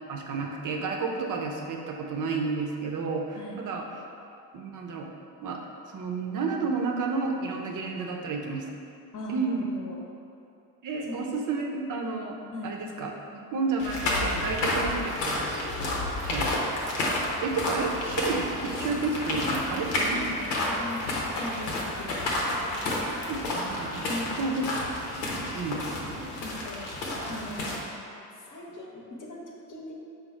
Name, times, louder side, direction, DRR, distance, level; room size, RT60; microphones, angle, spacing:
voice 1, 0.1-3.8 4.5-5.1 5.4-5.6 5.9-8.7 9.3-9.7 10.8-12.4 12.6-15.7 16.2-16.6 17.0-20.4 23.3-24.6 24.9-25.0 25.3-26.3, right 4 dB, 40° right, 1 dB, 0.7 m, -31 dB
voice 2, 9.1-10.0 11.0-11.2 12.5-12.7 20.1-21.1 21.4-22.6 24.0-24.4 26.4-27.9 28.4-29.9, left 1 dB, 40° left, -1 dB, 0.9 m, -39 dB
sound 1, 13.8-27.8, left 1 dB, 75° left, 0.8 m, -30 dB
5.0 x 2.3 x 4.2 m, 2.7 s
figure-of-eight pair, 45°, 48 cm